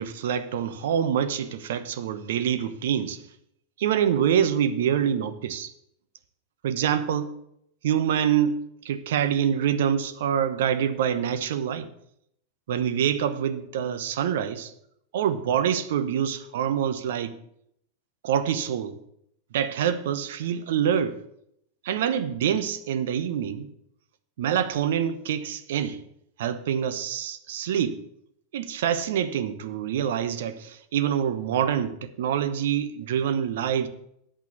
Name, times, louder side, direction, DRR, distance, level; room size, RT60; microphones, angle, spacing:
voice 1, 0.0-3.2 3.8-5.7 6.6-7.3 7.8-8.6 8.8-11.9 12.7-14.7 15.1-17.4 18.2-19.0 19.5-21.2 21.8-23.7 24.4-26.0 26.4-28.0 28.5-33.9, right 9 dB, 55° right, 11 dB, 1.0 m, -26 dB
8.7 x 8.4 x 8.2 m, 0.73 s
figure-of-eight pair, 90°, 0 cm